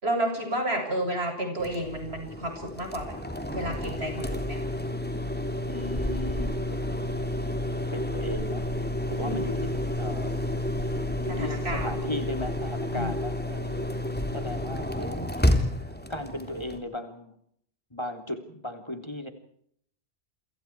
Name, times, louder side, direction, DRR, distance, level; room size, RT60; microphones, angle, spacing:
voice 1, 0.0-3.2 3.5-4.6 8.3-8.6 9.2-9.5 11.3-12.0 12.9-13.1, right 1 dB, 75° right, 5 dB, 7.8 m, -31 dB
sound 1, 1.6-16.8, left 1 dB, 10° left, 3.3 m, -30 dB
voice 2, 5.7-7.0 7.9-10.4 11.0-17.3 17.9-19.3, left 1 dB, 25° left, 6 dB, 3.4 m, -37 dB
29.5 x 26.5 x 4.7 m, 0.68 s
omnidirectional pair, 1.1 m